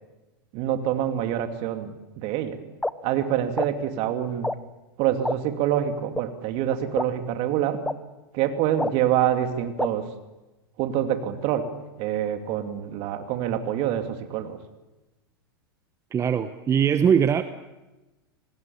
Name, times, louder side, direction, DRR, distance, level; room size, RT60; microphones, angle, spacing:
voice 1, 0.5-2.6 3.0-4.5 5.0-7.8 8.3-10.1 10.8-11.6 12.0-14.6, right 10 dB, 50° right, 7 dB, 2.7 m, -26 dB
sound 1, 2.8-2.9 3.6-3.7 4.4-4.6 5.2-5.4 6.1-6.2 7.0-7.1 7.8-7.9 8.8-8.9 9.8-9.9, left 2 dB, 5° left, 0.8 m, -25 dB
voice 2, 16.1-17.4, right 8 dB, 25° right, 11 dB, 1.0 m, -21 dB
26.5 x 19.5 x 7.2 m, 1.1 s
hypercardioid pair, 100°, 12 cm